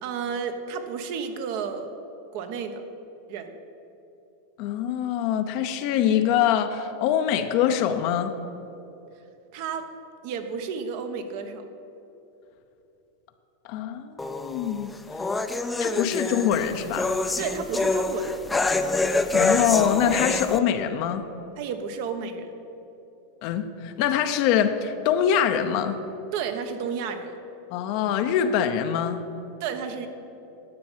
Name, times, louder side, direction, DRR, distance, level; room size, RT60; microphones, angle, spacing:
voice 1, 0.0-1.9 2.3-2.8 3.3-3.5 9.5-9.9 10.2-11.6 17.4-18.4 21.6-22.5 26.3-27.3 29.6-30.1, right 6 dB, 60° right, 7 dB, 1.1 m, -32 dB
voice 2, 4.6-8.3 13.6-14.9 15.8-17.2 19.0-21.2 23.4-26.0 27.7-29.2, left 9 dB, 55° left, 7 dB, 0.7 m, -24 dB
sound 1, 14.2-20.6, left 3 dB, 10° left, 0.5 m, -26 dB
10.5 x 7.0 x 7.4 m, 3.0 s
supercardioid pair, 130°, 0 cm